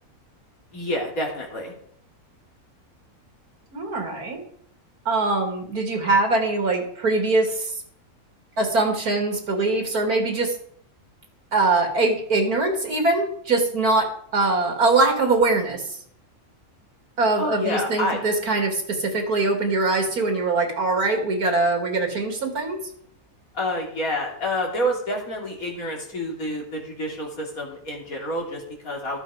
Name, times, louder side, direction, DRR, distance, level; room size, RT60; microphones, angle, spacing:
voice 1, 0.7-1.7 17.4-18.2 23.5-29.2, left 1 dB, 65° left, 0 dB, 3.5 m, -28 dB
voice 2, 3.7-4.4 5.1-7.8 8.6-10.6 11.5-16.0 17.2-22.8, right 3 dB, 80° right, 4 dB, 2.8 m, -22 dB
13.5 x 8.7 x 5.0 m, 0.64 s
omnidirectional pair, 1.6 m